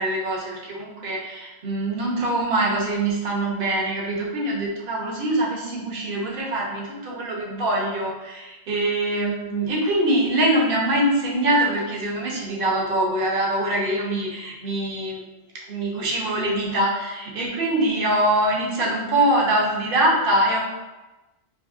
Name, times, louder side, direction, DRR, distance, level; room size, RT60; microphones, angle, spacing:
voice 1, 0.0-15.2 15.7-20.6, right 1 dB, 60° right, -3 dB, 0.9 m, -23 dB
2.7 x 2.6 x 2.4 m, 1.1 s
omnidirectional pair, 1.1 m